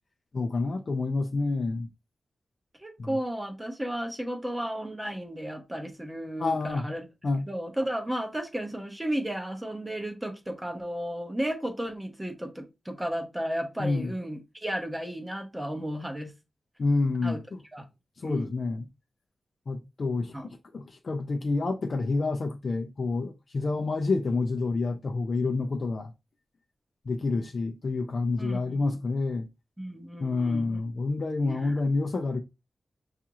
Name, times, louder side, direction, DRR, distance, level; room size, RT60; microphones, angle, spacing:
voice 1, 0.3-1.9 3.0-3.2 6.4-6.8 7.2-7.5 13.8-14.1 16.8-17.6 18.2-18.9 19.7-26.1 27.1-29.5 30.2-32.4, left 3 dB, 50° left, 0.5 m, -28 dB
voice 2, 2.8-7.0 7.5-16.3 17.2-17.4 17.7-17.9 18.2-18.5 20.3-20.5 28.4-28.9 29.8-30.8 31.4-31.7, right 1 dB, 10° right, 0.7 m, -34 dB
5.7 x 2.4 x 2.9 m
wide cardioid pair, 130°, 0 cm